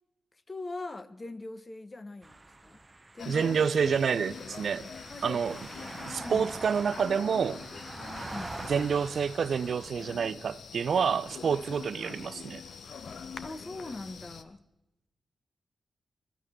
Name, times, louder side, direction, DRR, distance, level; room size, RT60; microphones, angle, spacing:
voice 1, 0.5-2.8 3.1-3.5 5.1-5.4 6.2-6.5 8.3-8.6 13.4-14.6, left 2 dB, 30° left, 1.0 m, -41 dB
sound 1, 2.2-9.9, right 2 dB, 20° right, 0.8 m, -45 dB
sound 2, 3.2-14.4, left 6 dB, 70° left, 1.0 m, -44 dB
voice 2, 3.3-4.9 5.2-5.6 6.1-7.6 8.7-12.6, right 6 dB, 70° right, 0.6 m, -28 dB
22.5 x 13.5 x 3.7 m
wide cardioid pair, 100°, 0 cm